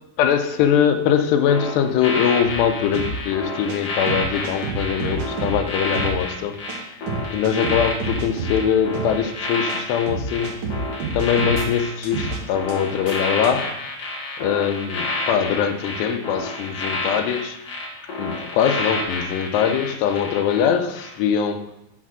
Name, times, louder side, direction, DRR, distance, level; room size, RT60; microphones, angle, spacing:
voice 1, 0.2-10.6 11.1-13.7 14.4-17.6 18.2-21.7, left 8 dB, 90° left, 8 dB, 2.8 m, -22 dB
sound 1, 1.5-20.6 21.0-21.2, left 2 dB, 60° left, 1.8 m, -29 dB
sound 2, 2.5-2.6 2.9-3.1 3.7-3.8 4.1-5.6 5.9-6.1 6.7-6.8 7.1-8.6 8.9-9.1 9.7-9.8 10.1-11.7 12.0-12.4 12.7-12.8 13.1-13.2 13.4-13.5, right 4 dB, 65° right, 2.3 m, -28 dB
6.9 x 4.1 x 6.1 m, 0.87 s
omnidirectional pair, 4.7 m